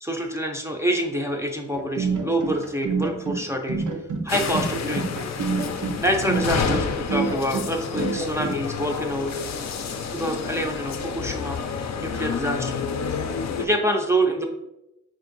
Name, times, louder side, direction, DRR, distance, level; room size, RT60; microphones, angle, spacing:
voice 1, 0.0-3.8 4.2-5.1 6.0-9.4 10.1-11.6 11.9-12.8 13.6-14.5, right 1 dB, 10° right, 1 dB, 0.4 m, -26 dB
sound 1, 1.7-8.6, right 4 dB, 90° right, 0.8 m, -28 dB
sound 2, 4.3-13.7, left 6 dB, 60° left, 0.5 m, -29 dB
5.1 x 2.6 x 3.8 m, 0.89 s
wide cardioid pair, 130°, 30 cm